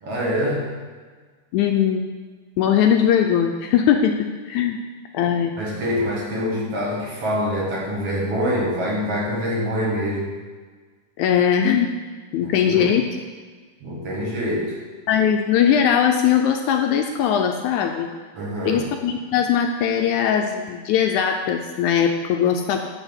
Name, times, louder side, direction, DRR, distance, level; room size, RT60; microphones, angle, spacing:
voice 1, 0.0-0.8 5.6-10.3 12.4-12.9 13.8-14.8 18.3-18.9, equal, 50° right, -5 dB, 2.5 m, -25 dB
voice 2, 1.5-2.0 2.6-4.8 5.1-5.5 11.2-11.9 12.3-13.0 15.1-18.1 18.7-22.8, left 8 dB, 80° left, 4 dB, 1.9 m, -20 dB
10.0 x 4.2 x 7.1 m, 1.5 s
omnidirectional pair, 3.7 m